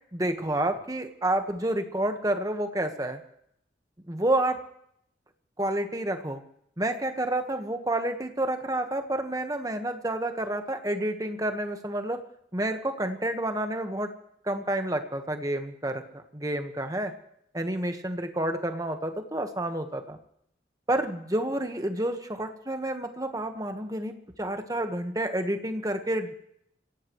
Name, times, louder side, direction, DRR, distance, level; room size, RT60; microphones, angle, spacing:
voice 1, 0.1-3.2 4.1-4.6 5.6-6.4 6.8-12.2 12.5-14.1 14.4-17.1 17.5-20.2 20.9-26.3, right 1 dB, 20° right, 6 dB, 1.4 m, -29 dB
26.0 x 16.5 x 3.2 m, 0.72 s
head